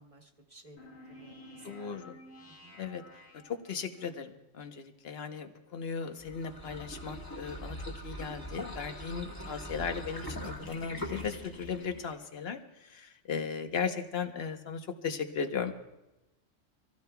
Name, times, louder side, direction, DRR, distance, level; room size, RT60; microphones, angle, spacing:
voice 1, 0.0-2.1 2.4-2.8, right 1 dB, 30° right, 2 dB, 1.3 m, -57 dB
sound 1, 0.8-4.1, left 1 dB, 30° left, 2.2 m, -52 dB
voice 2, 1.6-2.2 2.8-3.0 3.4-7.8 8.0-15.7, left 6 dB, 55° left, 6 dB, 1.2 m, -37 dB
sound 2, 6.2-12.2, equal, 15° left, 1.5 m, -42 dB
27.0 x 16.0 x 2.3 m, 0.98 s
omnidirectional pair, 1.3 m